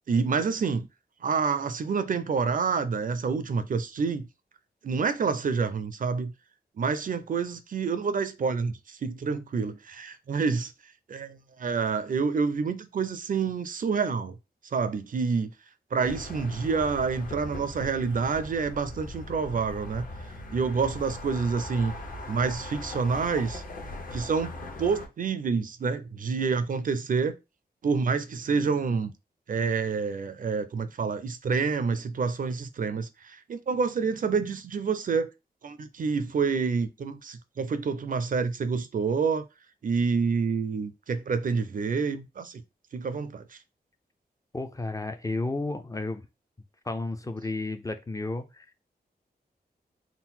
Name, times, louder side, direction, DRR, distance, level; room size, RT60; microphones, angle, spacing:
voice 1, 0.1-0.9 1.2-4.3 4.8-6.3 6.8-10.7 11.1-14.3 14.7-15.5 15.9-20.1 20.5-21.9 22.3-23.6 24.1-24.5 24.8-27.4 27.8-29.1 29.5-35.3 35.6-39.4 39.8-42.6 42.9-43.4, right 5 dB, 55° right, 0.4 m, -28 dB
sound 1, 16.0-25.1, left 2 dB, 55° left, 1.1 m, -40 dB
voice 2, 44.5-46.3 46.9-48.8, left 2 dB, 20° left, 0.4 m, -32 dB
3.8 x 2.1 x 4.2 m
wide cardioid pair, 145°, 17 cm